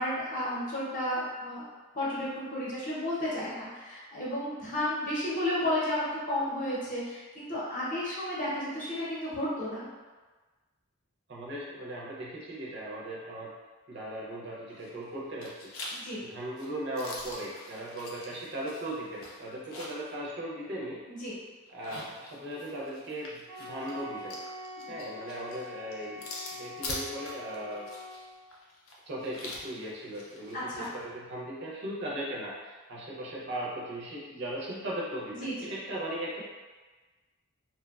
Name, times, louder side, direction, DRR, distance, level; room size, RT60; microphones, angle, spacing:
voice 1, 0.0-1.7 1.9-9.9 16.0-16.2 21.1-21.4 24.9-25.0 30.5-30.9 35.3-35.7, left 1 dB, 35° left, -7 dB, 0.7 m, -32 dB
voice 2, 11.3-13.5 13.9-15.7 16.2-21.0 21.7-24.4 24.9-26.3 26.6-27.9 29.1-36.4, right 1 dB, 55° right, -4 dB, 0.5 m, -38 dB
sound 1, 14.7-15.1 15.4-20.1 20.5-20.6 21.7-30.9, left 2 dB, 80° left, 0.5 m, -44 dB
Wind instrument woodwind instrument, 23.5-28.4, left 2 dB, 5° right, 0.5 m, -44 dB
2.9 x 2.2 x 2.3 m, 1.3 s
head